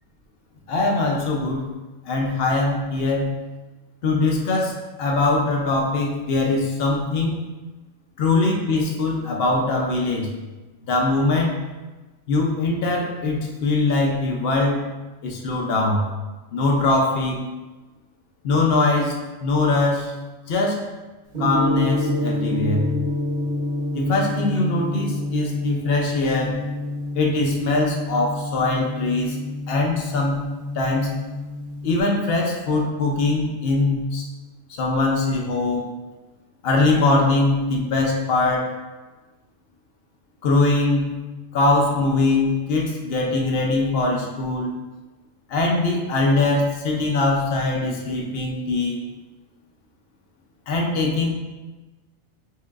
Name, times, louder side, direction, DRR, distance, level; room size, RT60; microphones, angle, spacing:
voice 1, 0.7-1.6 2.1-3.3 4.0-4.7 5.0-7.4 8.2-10.3 10.9-11.6 12.3-14.8 15.2-16.1 16.5-17.4 18.4-20.1 20.5-20.8 21.4-22.9 23.9-26.6 27.1-29.4 29.7-30.4 30.7-31.1 31.8-34.3 34.8-35.9 36.6-38.7 40.4-41.0 41.5-44.7 45.5-49.0 50.7-51.3, left 2 dB, 55° left, 0 dB, 0.8 m, -22 dB
Gong, 21.3-32.0, left 1 dB, 45° right, 1.0 m, -28 dB
4.5 x 3.6 x 2.4 m, 1.2 s
omnidirectional pair, 1.3 m